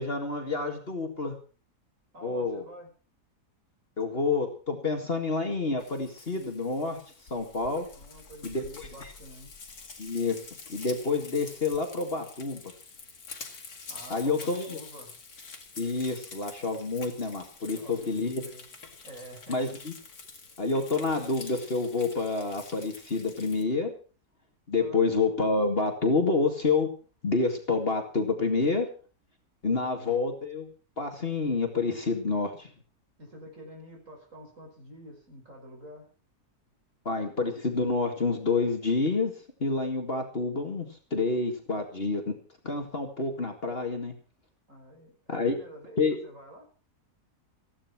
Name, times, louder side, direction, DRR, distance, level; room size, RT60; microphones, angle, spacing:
voice 1, 0.0-1.4 2.2-2.6 4.0-7.0 7.3-7.9 8.4-9.1 10.0-10.4 10.7-12.6 14.1-14.8 15.8-18.4 19.5-19.9 20.6-23.9 24.7-26.9 27.2-28.9 29.6-30.7 31.0-32.7 37.1-39.3 39.6-42.3 42.6-44.1 45.3-45.5 46.0-46.2, left 3 dB, 35° left, 4 dB, 2.3 m, -28 dB
voice 2, 2.1-2.9 7.9-9.5 13.9-15.1 17.8-18.7 19.0-19.6 24.8-25.1 29.7-30.3 33.2-36.1 44.7-46.7, equal, 50° right, 1 dB, 6.2 m, -48 dB
Frying (food), 5.8-23.6, left 4 dB, 70° left, 2.7 m, -47 dB
15.5 x 11.5 x 6.0 m, 0.38 s
omnidirectional pair, 1.7 m